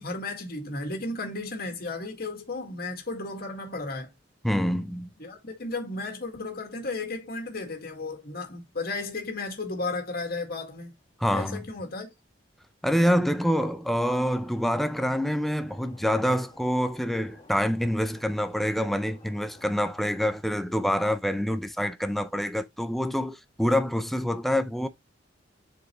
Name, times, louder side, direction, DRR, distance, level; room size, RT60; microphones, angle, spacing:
voice 1, 0.0-4.1 5.2-10.9 11.3-12.1, left 3 dB, 55° left, 1.9 m, -34 dB
voice 2, 4.4-5.1 11.2-11.6 12.8-24.9, equal, ahead, 0.5 m, -26 dB
sound 1, 14.2-20.4, left 1 dB, 25° left, 1.5 m, -53 dB
7.7 x 4.6 x 3.0 m
head